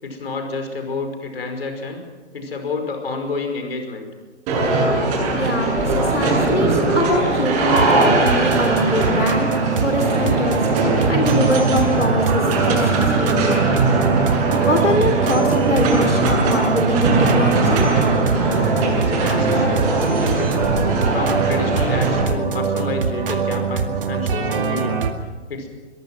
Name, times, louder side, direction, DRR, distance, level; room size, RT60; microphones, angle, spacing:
voice 1, 0.0-2.0 2.3-4.1 18.6-20.6 21.1-25.0 25.5-25.7, left 3 dB, 55° left, 5 dB, 5.3 m, -29 dB
sound 1, 4.5-22.2, right 3 dB, 20° right, 7.7 m, -20 dB
voice 2, 5.3-9.5 9.8-10.6 11.1-13.6 14.6-17.9, left 1 dB, 90° left, 3 dB, 3.2 m, -23 dB
sound 2, 7.6-25.1, right 5 dB, 50° right, 2.2 m, -24 dB
22.5 x 22.0 x 6.1 m, 1.3 s
figure-of-eight pair, 130°, 35 cm